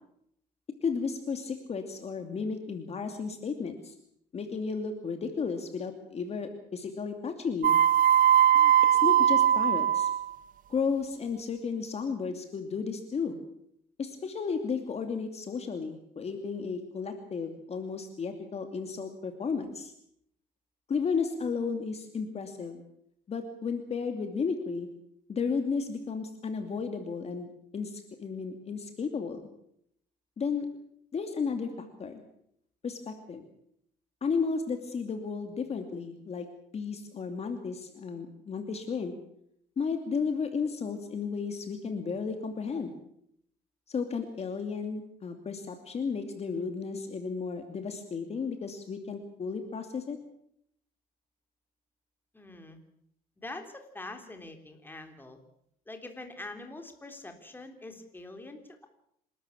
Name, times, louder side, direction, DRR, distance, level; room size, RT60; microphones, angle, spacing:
voice 1, 0.8-3.9 4.3-7.8 8.5-8.7 9.0-10.1 10.7-13.4 14.0-19.9 20.9-22.8 23.3-24.9 25.3-27.5 27.7-29.5 30.4-30.7 31.1-32.2 32.8-33.4 34.2-36.5 36.7-39.1 39.8-42.9 43.9-50.2, left 5 dB, 40° left, 6 dB, 2.6 m, -33 dB
sound 1, 7.6-10.2, right 10 dB, 55° right, 0.7 m, -21 dB
voice 2, 52.3-52.8 53.4-55.4 55.9-58.9, left 2 dB, 10° left, 5 dB, 3.5 m, -44 dB
27.0 x 13.0 x 8.6 m, 0.73 s
cardioid pair, 110°, 17 cm